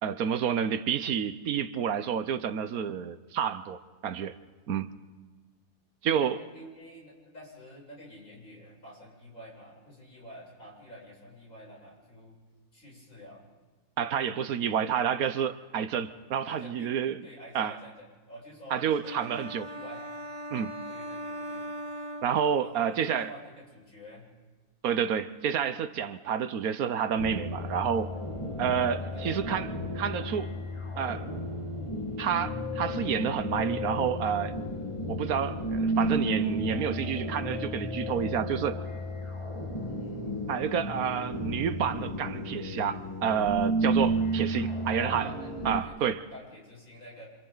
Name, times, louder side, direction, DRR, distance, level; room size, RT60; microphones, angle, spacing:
voice 1, 0.0-4.4 4.7-4.9 6.0-6.4 14.0-17.2 17.5-17.7 18.7-19.7 20.5-20.8 22.2-23.3 24.8-28.1 28.6-30.5 31.0-31.3 32.2-34.6 35.1-38.8 40.5-45.3 45.6-46.2, right 8 dB, 75° right, 1.3 m, -29 dB
voice 2, 6.2-12.4 12.7-13.4 14.2-15.0 16.4-16.9 17.2-20.1 20.9-21.7 22.6-24.3 29.0-29.5 39.9-40.4 44.9-45.5 45.8-47.3, equal, 65° left, 8.2 m, -48 dB
sound 1, 19.0-22.9, equal, 25° right, 0.8 m, -40 dB
sound 2, 27.2-45.8, right 1 dB, 20° left, 1.8 m, -32 dB
28.5 x 27.0 x 4.0 m
omnidirectional pair, 1.6 m